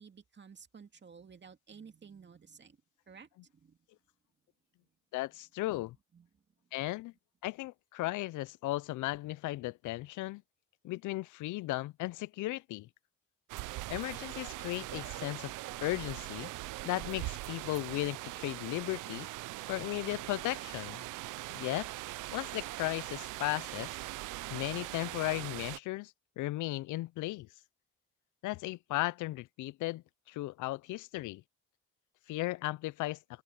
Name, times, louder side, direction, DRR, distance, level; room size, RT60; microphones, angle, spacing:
voice 1, 0.0-2.8 3.1-3.8 6.1-6.4 6.8-6.9, right 6 dB, 35° right, 2.4 m, -54 dB
voice 2, 5.1-6.0 6.7-7.1 7.4-10.4 10.8-12.9 13.9-15.5 15.8-16.5 16.8-19.3 19.7-21.0 21.5-21.9 22.3-23.9 24.5-27.5 28.4-31.4 32.3-33.2, left 18 dB, 80° left, 0.5 m, -36 dB
sound 1, 13.5-25.8, right 19 dB, 85° right, 0.5 m, -41 dB
open air
cardioid pair, 90°, 30 cm